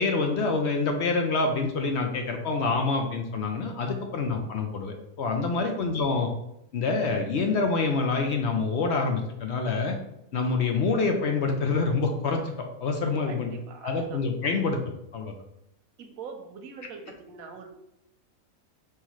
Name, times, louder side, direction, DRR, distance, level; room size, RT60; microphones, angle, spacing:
voice 1, 0.0-6.3 6.7-9.9 10.3-12.5 12.8-13.5 13.8-14.8 15.1-15.3, left 4 dB, 60° left, 3 dB, 0.8 m, -26 dB
voice 2, 13.3-14.2 16.0-17.7, right 5 dB, 90° right, 5 dB, 1.1 m, -43 dB
5.6 x 3.1 x 3.0 m, 0.80 s
omnidirectional pair, 1.4 m